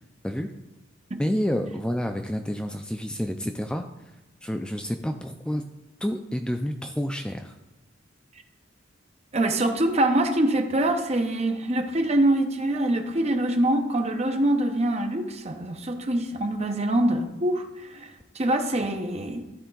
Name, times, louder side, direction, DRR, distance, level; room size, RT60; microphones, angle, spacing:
voice 1, 1.2-3.8 4.4-5.6 6.0-7.6, equal, 5° left, 6 dB, 0.3 m, -29 dB
voice 2, 9.3-18.1 18.3-19.4, right 1 dB, 35° right, 6 dB, 0.8 m, -24 dB
13.0 x 4.4 x 3.8 m, 1.0 s
head